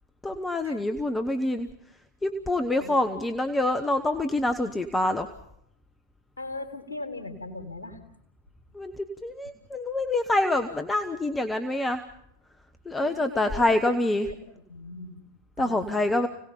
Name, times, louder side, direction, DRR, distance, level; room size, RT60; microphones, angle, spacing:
voice 1, 0.2-1.7 2.2-5.3 8.7-12.0 12.8-14.3 15.6-16.3, left 2 dB, 10° left, 8 dB, 1.3 m, -26 dB
voice 2, 6.4-8.0 13.0-14.0 14.2-15.2 15.6-15.9, left 2 dB, 75° left, 6 dB, 3.8 m, -39 dB
29.5 x 18.5 x 5.7 m, 0.74 s
figure-of-eight pair, 90°, 0 cm